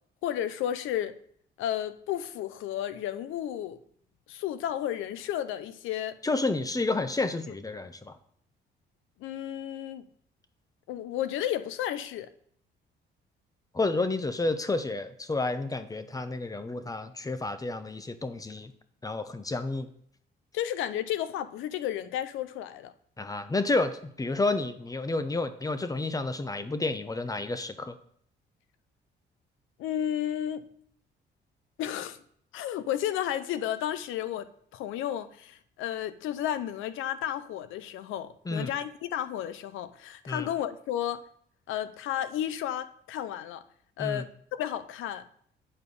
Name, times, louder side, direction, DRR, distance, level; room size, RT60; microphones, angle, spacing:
voice 1, 0.2-1.2 1.6-3.8 4.3-6.2 9.2-10.1 10.9-12.3 20.5-22.9 29.8-30.6 31.8-32.2 32.5-34.5 34.7-41.2 41.7-43.6 44.0-45.3, left 11 dB, 90° left, 0.6 m, -32 dB
voice 2, 6.2-8.2 13.7-18.7 19.0-19.9 23.2-28.0 38.5-38.7 40.3-40.5 44.0-44.2, left 3 dB, 15° left, 0.8 m, -30 dB
8.7 x 4.7 x 5.3 m
cardioid pair, 90°, 20 cm